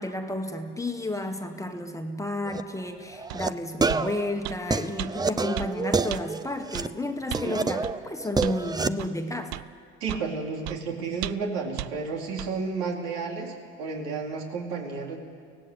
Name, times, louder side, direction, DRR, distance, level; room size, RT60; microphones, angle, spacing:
voice 1, 0.0-9.6, left 1 dB, 10° left, 5 dB, 1.5 m, -32 dB
sound 1, 2.4-2.6 3.1-3.5 3.8-6.9 7.3-8.9, right 4 dB, 10° right, 0.6 m, -28 dB
sound 2, 3.3-3.4 3.9-4.1 4.4-4.6 5.0-5.1 5.6-5.7 6.1-6.2 6.7-6.9 7.3-7.5 7.8-8.0 8.4-8.6 9.0-9.1 9.5-9.7 10.1-10.3 10.7-10.8 11.2-11.5 11.8-11.9 12.4-12.5, right 18 dB, 55° right, 0.6 m, -34 dB
voice 2, 10.0-15.2, right 4 dB, 75° right, 0 dB, 4.3 m, -32 dB
24.0 x 17.5 x 8.2 m, 2.1 s
supercardioid pair, 100°, 32 cm